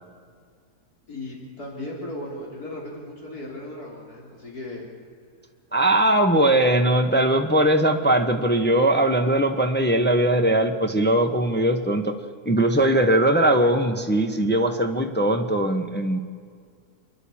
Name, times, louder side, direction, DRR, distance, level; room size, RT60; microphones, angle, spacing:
voice 1, 1.1-4.8, left 1 dB, 70° left, -2 dB, 4.2 m, -36 dB
voice 2, 5.7-12.2 12.4-16.2, right 1 dB, 10° left, 4 dB, 1.0 m, -20 dB
28.5 x 11.0 x 8.7 m, 2.1 s
omnidirectional pair, 1.7 m